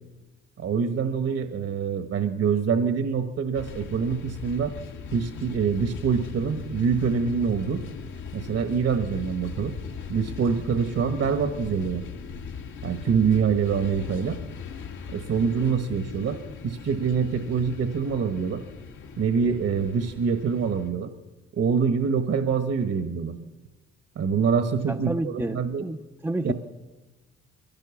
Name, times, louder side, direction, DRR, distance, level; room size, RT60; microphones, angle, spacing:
voice 1, 0.6-4.7 5.1-7.8 8.3-9.7 10.1-12.0 12.8-14.4 15.1-18.6 19.2-21.1 21.5-23.3 24.1-25.9 26.4-26.5, right 6 dB, 55° right, 8 dB, 1.3 m, -25 dB
sound 1, 3.5-20.9, left 6 dB, 85° left, 2.2 m, -39 dB
voice 2, 24.9-26.0 26.2-26.5, right 2 dB, 10° right, 5 dB, 0.6 m, -29 dB
22.0 x 16.5 x 7.2 m, 1.2 s
cardioid pair, 90°, 30 cm